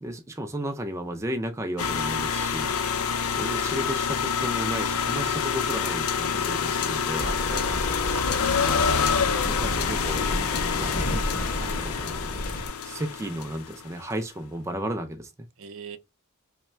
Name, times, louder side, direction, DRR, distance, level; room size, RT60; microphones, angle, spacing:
voice 1, 0.0-2.8 3.4-7.3 8.5-9.0 9.5-11.2 11.6-12.3 12.8-15.3, right 1 dB, 15° right, 0.4 m, -34 dB
sound 1, 1.8-13.8, left 6 dB, 90° left, 0.5 m, -27 dB
sound 2, 7.2-12.7, equal, 40° left, 0.7 m, -32 dB
voice 2, 7.2-8.3 15.6-16.0, right 5 dB, 70° right, 0.5 m, -40 dB
3.2 x 2.1 x 4.3 m
head